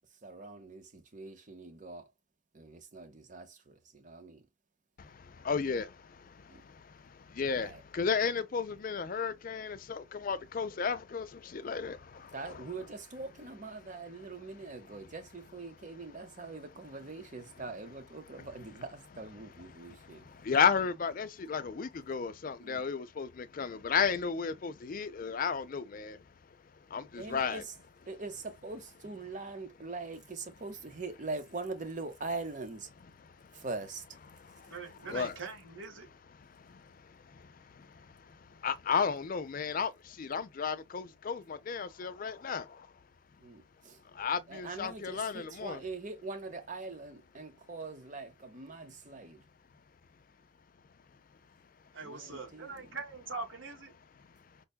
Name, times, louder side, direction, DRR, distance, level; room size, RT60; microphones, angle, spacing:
voice 1, 0.2-2.1 2.5-4.5 6.5-6.6 7.5-7.8 12.3-20.2 22.6-22.9 27.2-27.7 28.1-32.9 33.5-34.2 35.0-35.2 43.4-44.0 44.5-49.4 52.0-52.9, right 3 dB, 40° right, 0.8 m, -43 dB
voice 2, 5.0-12.3 20.1-26.2 26.9-27.6 33.3-33.6 34.5-34.7 35.1-35.3 36.5-42.9 44.1-45.8, left 6 dB, 45° left, 0.4 m, -34 dB
voice 3, 34.7-36.1 51.9-53.9, right 4 dB, 90° right, 1.3 m, -42 dB
5.3 x 2.2 x 2.2 m
head